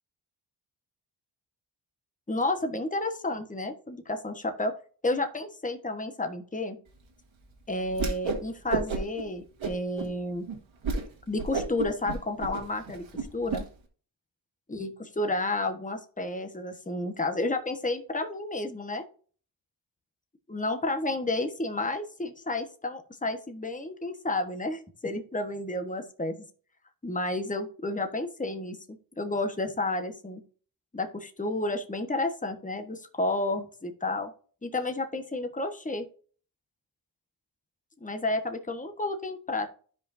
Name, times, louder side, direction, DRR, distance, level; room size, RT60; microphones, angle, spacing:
voice 1, 2.3-4.7 5.0-6.8 7.7-10.5 11.3-13.0 13.3-13.6 14.7-19.0 20.5-26.4 27.0-28.8 29.2-30.4 30.9-34.3 34.6-36.1 38.0-39.7, left 2 dB, 15° left, 6 dB, 1.2 m, -31 dB
Whoosh swoosh swish, 7.9-8.4 8.7-9.2 9.6-10.1 10.5-10.6 10.8-11.0 11.4-13.6, right 4 dB, 80° right, 1.8 m, -31 dB
12.5 x 5.2 x 2.7 m, 0.42 s
cardioid pair, 55°, 48 cm